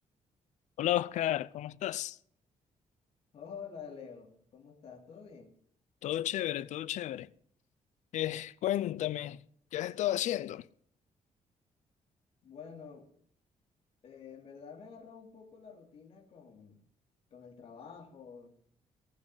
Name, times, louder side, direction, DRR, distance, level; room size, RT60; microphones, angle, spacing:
voice 1, 0.8-2.2 6.0-7.3 8.1-9.4 9.7-10.7, left 13 dB, 80° left, 0.6 m, -32 dB
voice 2, 3.3-5.5 12.4-13.1 14.0-16.8 17.3-18.5, left 6 dB, 55° left, 2.8 m, -49 dB
19.0 x 6.6 x 9.7 m
cardioid pair, 170°, 12 cm